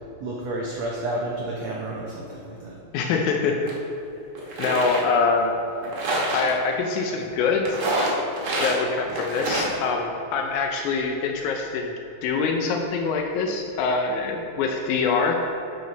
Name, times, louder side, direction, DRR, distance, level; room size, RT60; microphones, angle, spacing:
voice 1, 0.2-2.8, right 1 dB, 85° right, -3 dB, 1.5 m, -30 dB
voice 2, 2.9-3.7 4.6-5.5 6.3-7.8 8.6-11.9 12.2-15.4, left 4 dB, 90° left, 2 dB, 1.7 m, -24 dB
sound 1, 3.7-3.8 4.4-5.1 5.8-6.5 7.7-8.8 9.1-9.7, right 1 dB, 55° right, 2.2 m, -26 dB
11.0 x 5.1 x 4.0 m, 2.8 s
omnidirectional pair, 4.2 m